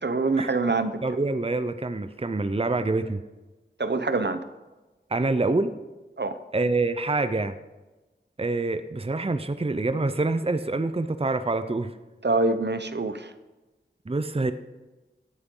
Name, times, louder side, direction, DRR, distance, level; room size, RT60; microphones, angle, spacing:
voice 1, 0.0-0.9 3.8-4.4 6.2-6.4 12.2-13.3, right 3 dB, 65° right, 10 dB, 0.8 m, -25 dB
voice 2, 1.0-3.2 5.1-5.7 6.5-7.5 8.4-11.9 14.1-14.5, right 3 dB, 30° right, 11 dB, 0.6 m, -26 dB
18.0 x 10.0 x 3.8 m, 1.2 s
wide cardioid pair, 40°, 19 cm